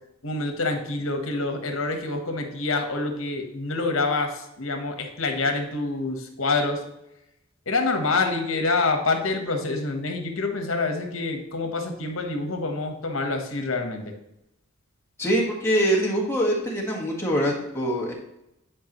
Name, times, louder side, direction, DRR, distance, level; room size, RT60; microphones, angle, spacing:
voice 1, 0.2-6.8 7.7-14.1, left 3 dB, 80° left, 5 dB, 1.2 m, -26 dB
voice 2, 15.2-18.1, equal, 10° left, -3 dB, 1.5 m, -24 dB
10.5 x 4.8 x 3.0 m, 0.86 s
head